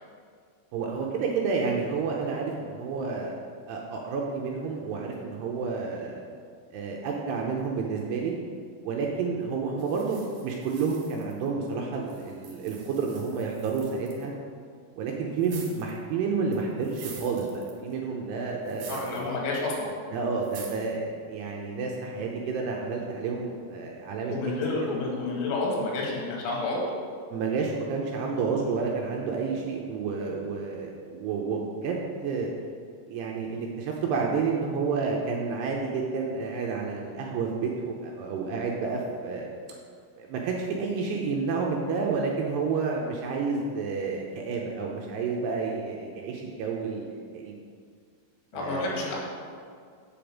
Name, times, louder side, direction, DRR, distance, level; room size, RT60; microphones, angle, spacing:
voice 1, 0.7-3.4 3.7-6.2 6.7-8.3 8.8-14.3 15.0-19.3 20.1-24.3 27.3-32.5 33.1-39.5 40.2-47.6 48.5-48.9, right 4 dB, 80° right, -1 dB, 2.6 m, -30 dB
sound 1, 9.8-11.7 12.1-14.2 15.4-16.0 16.5-17.9 18.7-19.3 19.6-19.7 20.4-20.9, right 5 dB, 60° right, 2.7 m, -47 dB
voice 2, 18.9-19.9 24.3-26.8 48.5-49.2, left 3 dB, 85° left, -2 dB, 4.2 m, -29 dB
7.9 x 5.2 x 7.4 m, 2.1 s
omnidirectional pair, 5.4 m